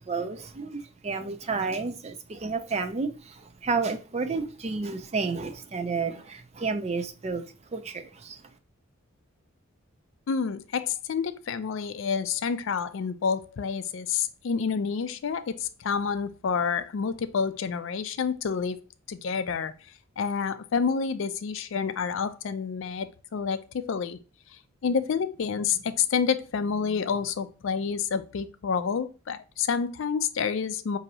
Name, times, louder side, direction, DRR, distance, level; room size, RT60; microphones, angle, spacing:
voice 1, 0.0-7.4 7.7-8.4, right 4 dB, 30° right, 0.4 m, -31 dB
voice 2, 10.3-18.8 19.1-19.7 20.2-24.2 24.8-31.0, left 6 dB, 60° left, 0.4 m, -28 dB
5.2 x 2.7 x 2.7 m
head